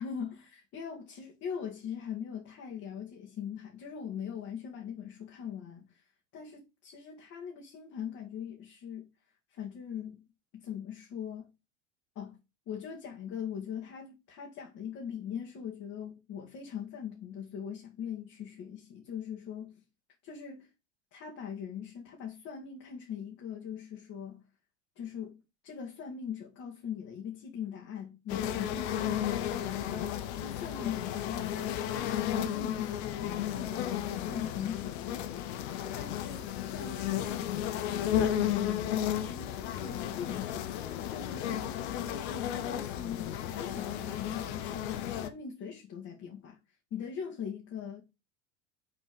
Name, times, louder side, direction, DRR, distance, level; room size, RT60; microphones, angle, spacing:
voice 1, 0.0-9.1 9.5-10.2 10.5-11.5 12.2-12.4 12.7-19.8 20.2-20.7 21.1-24.4 25.0-25.4 25.6-46.6 46.9-48.0, left 8 dB, 40° left, 2.3 m, -41 dB
sound 1, 28.3-45.3, left 11 dB, 60° left, 1.1 m, -33 dB
6.4 x 4.2 x 5.4 m
hypercardioid pair, 85°, 36 cm